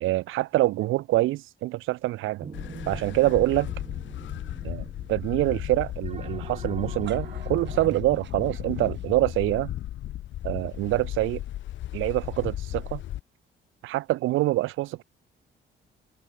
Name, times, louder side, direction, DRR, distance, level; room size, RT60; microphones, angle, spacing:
voice 1, 0.0-2.5 2.9-3.7 4.6-9.7 10.4-11.4 11.9-13.0 13.8-15.0, right 17 dB, 85° right, 0.7 m, -25 dB
sound 1, 2.4-8.0, right 5 dB, 30° right, 3.0 m, -44 dB
sound 2, 2.5-13.2, left 13 dB, 70° left, 0.8 m, -35 dB
sound 3, 6.8-9.4, right 10 dB, 65° right, 2.2 m, -46 dB
cardioid pair, 90°, 20 cm